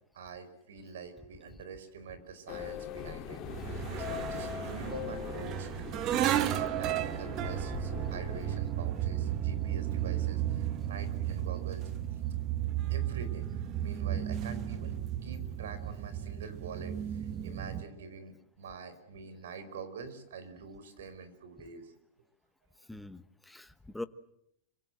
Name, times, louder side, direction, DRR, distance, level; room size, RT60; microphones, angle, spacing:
voice 1, 0.1-3.4 3.7-5.7 6.3-11.8 12.9-21.9, right 5 dB, 85° right, 11 dB, 4.9 m, -46 dB
sound 1, 2.5-8.6, left 9 dB, 25° left, 2.8 m, -41 dB
sound 2, 3.5-17.8, right 11 dB, 30° right, 1.3 m, -34 dB
voice 2, 22.9-24.0, left 2 dB, 5° left, 11 dB, 1.0 m, -43 dB
26.0 x 25.0 x 8.0 m, 0.76 s
supercardioid pair, 170°, 0 cm